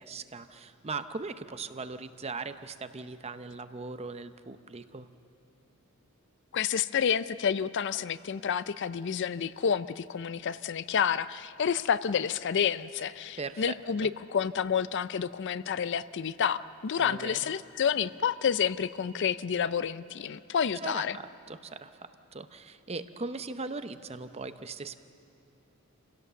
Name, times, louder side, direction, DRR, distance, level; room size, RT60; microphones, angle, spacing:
voice 1, 0.0-5.1 13.4-13.7 14.0-14.1 17.0-17.5 20.8-25.0, right 4 dB, 30° right, 10 dB, 0.7 m, -39 dB
voice 2, 6.5-21.2, left 7 dB, 55° left, 15 dB, 0.4 m, -29 dB
27.0 x 17.0 x 6.9 m, 2.7 s
head